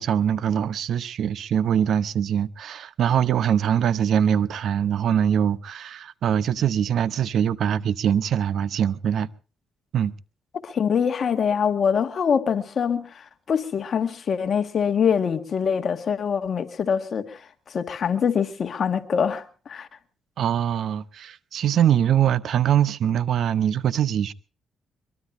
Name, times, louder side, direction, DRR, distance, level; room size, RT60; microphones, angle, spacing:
voice 1, 0.0-9.3 9.9-10.1 20.4-24.3, right 9 dB, 65° right, 0.8 m, -23 dB
voice 2, 10.5-19.9, left 7 dB, 50° left, 1.8 m, -24 dB
23.0 x 23.0 x 2.7 m
cardioid pair, 90°, 0 cm